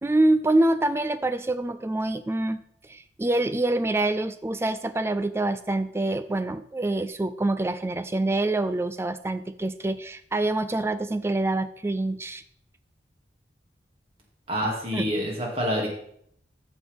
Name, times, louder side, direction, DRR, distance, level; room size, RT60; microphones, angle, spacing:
voice 1, 0.0-2.6 2.8-12.4 14.6-15.1, right 2 dB, 15° right, 12 dB, 0.3 m, -26 dB
voice 2, 14.5-15.9, equal, 35° right, -1 dB, 2.3 m, -27 dB
13.5 x 6.0 x 3.5 m, 0.67 s
head